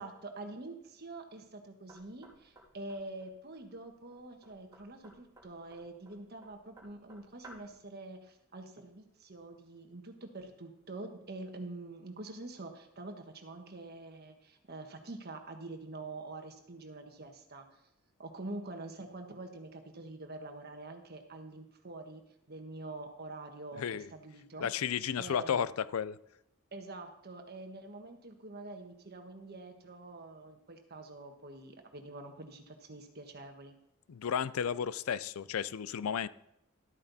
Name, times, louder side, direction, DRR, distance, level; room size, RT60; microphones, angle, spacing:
voice 1, 0.0-17.7 18.2-22.2 22.5-24.7 25.2-25.7 26.7-33.7, right 2 dB, 50° right, 1.4 m, -46 dB
Knock, 1.9-7.8, right 1 dB, 15° right, 3.2 m, -58 dB
voice 2, 23.7-24.1 24.6-26.2 34.1-36.3, left 8 dB, 85° left, 0.4 m, -33 dB
13.0 x 8.7 x 4.1 m
head